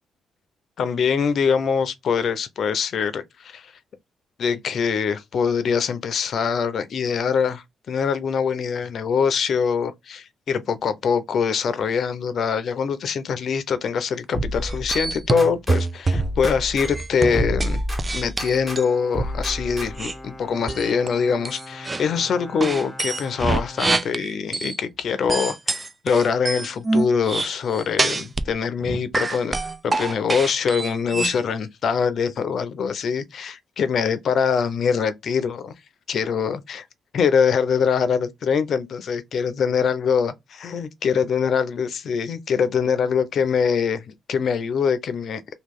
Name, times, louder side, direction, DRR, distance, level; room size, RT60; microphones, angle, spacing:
voice 1, 0.8-3.7 4.4-17.8 18.1-35.7 36.1-36.9 37.1-45.4, left 6 dB, 65° left, 0.6 m, -23 dB
sound 1, 14.3-15.8 16.1-18.8 19.1-20.2, right 1 dB, 5° right, 1.6 m, -29 dB
sound 2, 14.6-16.5 16.8-18.9 20.0-20.1 20.7-21.1 21.4-22.0 22.6-24.8 25.3-28.5 28.8-31.4, right 3 dB, 25° right, 0.4 m, -25 dB
Bowed string instrument, 18.4-24.6, left 2 dB, 30° left, 0.9 m, -42 dB
3.0 x 2.4 x 3.6 m
cardioid pair, 75°, 0 cm